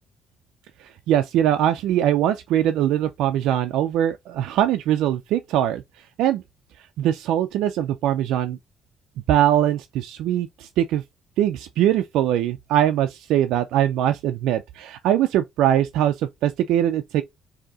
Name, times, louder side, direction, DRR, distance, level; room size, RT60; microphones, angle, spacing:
voice 1, 0.8-5.8 6.2-6.4 7.0-8.6 9.3-11.0 11.4-17.2, right 11 dB, 85° right, 0.4 m, -22 dB
3.9 x 2.8 x 3.5 m
cardioid pair, 85°, 0 cm